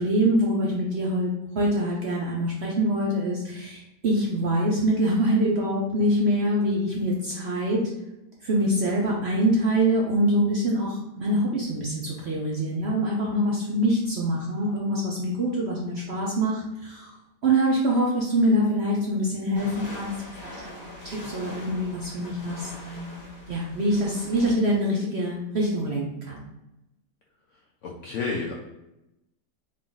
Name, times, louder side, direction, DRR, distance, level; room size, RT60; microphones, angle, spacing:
voice 1, 0.0-7.9 8.4-17.1 17.4-20.9 21.2-26.4, right 1 dB, 60° right, -3 dB, 0.7 m, -25 dB
sound 1, 19.5-24.5, left 1 dB, 45° left, 1.3 m, -42 dB
voice 2, 27.8-28.5, left 4 dB, 70° left, -1 dB, 0.7 m, -30 dB
3.7 x 2.4 x 3.8 m, 0.91 s
omnidirectional pair, 1.7 m